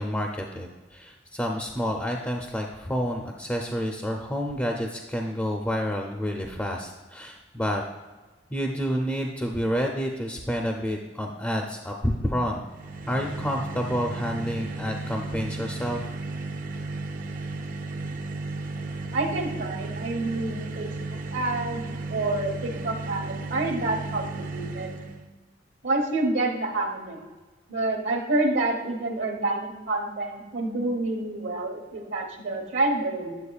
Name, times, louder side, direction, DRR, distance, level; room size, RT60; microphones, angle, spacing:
voice 1, 0.0-7.8 8.5-12.6 13.1-16.0, equal, 10° left, 1 dB, 0.4 m, -29 dB
sound 1, 12.7-25.3, right 3 dB, 45° right, 0.4 m, -34 dB
voice 2, 19.1-21.8 22.1-24.9 25.8-27.2 27.7-33.3, right 2 dB, 70° right, 3 dB, 1.2 m, -28 dB
8.3 x 7.3 x 2.3 m, 1.3 s
head